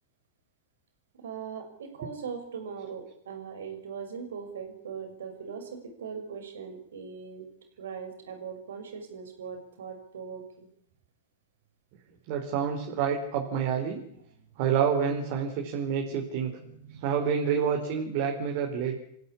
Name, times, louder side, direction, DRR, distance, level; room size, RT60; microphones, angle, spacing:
voice 1, 1.2-7.5 7.8-10.7 16.6-17.0, right 6 dB, 75° right, 6 dB, 6.0 m, -40 dB
voice 2, 12.3-14.0 14.6-16.6 16.9-18.9, right 7 dB, 55° right, 3 dB, 4.6 m, -28 dB
28.0 x 15.5 x 8.7 m, 0.74 s
hypercardioid pair, 100°, 0 cm